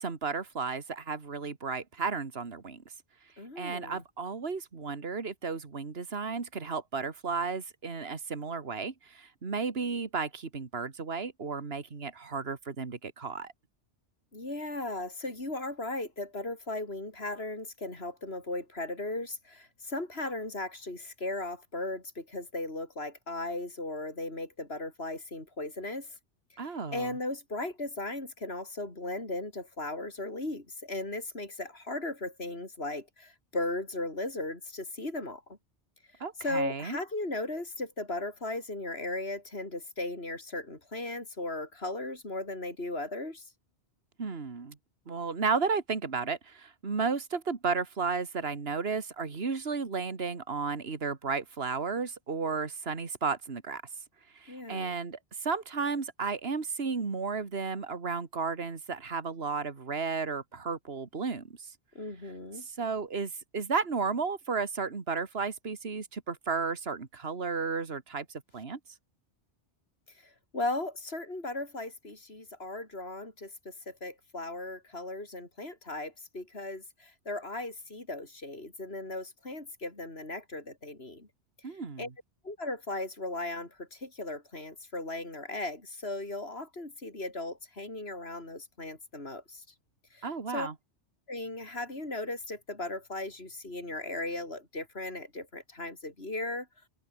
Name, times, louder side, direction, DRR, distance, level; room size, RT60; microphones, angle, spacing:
voice 1, 0.0-2.8 3.6-13.5 26.6-27.2 36.2-37.0 44.2-44.8 45.1-53.8 54.4-61.7 62.7-68.8 81.6-82.1 90.2-90.7, right 5 dB, 60° right, 2.2 m, -33 dB
voice 2, 3.4-4.0 14.3-26.2 26.6-35.4 36.1-43.5 54.5-55.0 62.0-62.6 70.1-81.3 81.6-82.1 82.4-89.6 90.1-90.7 91.3-96.7, left 2 dB, 60° left, 5.5 m, -37 dB
omnidirectional pair, 1.2 m